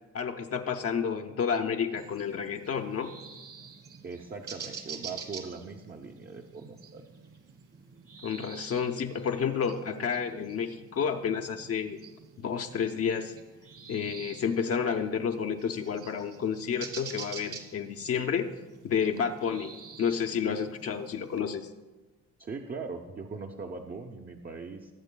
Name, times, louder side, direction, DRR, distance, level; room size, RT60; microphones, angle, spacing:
voice 1, 0.1-3.1 8.2-12.0 12.4-13.3 13.9-18.6 18.8-19.7 20.0-21.7, left 7 dB, 50° left, 4 dB, 0.7 m, -30 dB
sound 1, 2.0-21.4, right 6 dB, 50° right, 1.5 m, -47 dB
voice 2, 4.0-7.0 22.4-24.9, right 4 dB, 30° right, 2 dB, 0.7 m, -40 dB
19.5 x 7.8 x 2.2 m, 1.2 s
cardioid pair, 90°, 30 cm